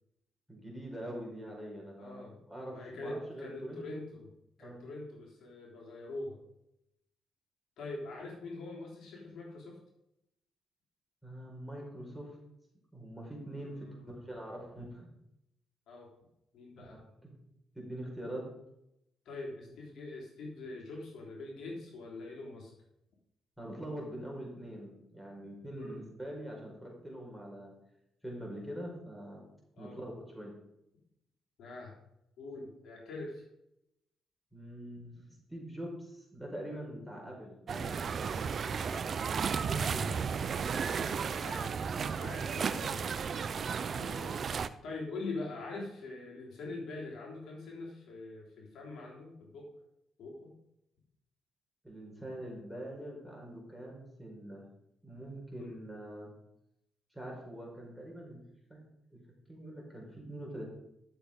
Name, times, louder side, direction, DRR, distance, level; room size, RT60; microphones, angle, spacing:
voice 1, 0.5-3.8 4.6-4.8 11.2-12.4 12.9-15.1 16.8-17.3 17.7-18.5 23.6-27.7 28.2-29.4 29.8-30.5 34.5-37.9 39.6-40.1 51.8-54.6 55.0-56.3 57.1-58.4 58.7-58.8 59.1-59.2 59.5-60.7, right 1 dB, ahead, -1 dB, 4.8 m, -44 dB
voice 2, 2.0-2.3 2.7-4.3 4.6-6.4 7.8-9.8 13.4-14.3 15.9-16.1 16.5-17.0 19.3-22.7 25.8-26.0 29.7-30.0 31.6-32.0 32.4-33.4 36.9-37.3 38.6-39.0 40.1-40.3 40.6-43.0 43.9-44.4 44.8-49.7 50.2-50.5 55.6-55.8, left 2 dB, 70° left, -2 dB, 3.7 m, -44 dB
sound 1, 37.7-44.7, right 6 dB, 50° right, 0.6 m, -34 dB
12.0 x 7.0 x 5.2 m, 0.82 s
cardioid pair, 90°, 0 cm